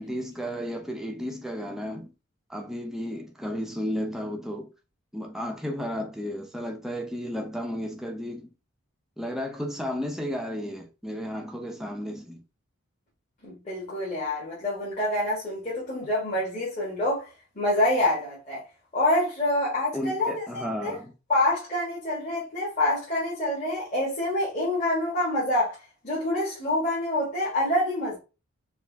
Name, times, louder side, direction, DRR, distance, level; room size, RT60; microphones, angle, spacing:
voice 1, 0.0-2.1 2.5-4.7 5.1-8.5 9.2-12.4 19.9-21.1, equal, ahead, 0.6 m, -33 dB
voice 2, 13.4-17.3 17.5-18.6 18.9-21.0 21.3-25.8 26.0-28.2, left 1 dB, 35° left, 1.5 m, -26 dB
4.6 x 2.4 x 3.4 m
head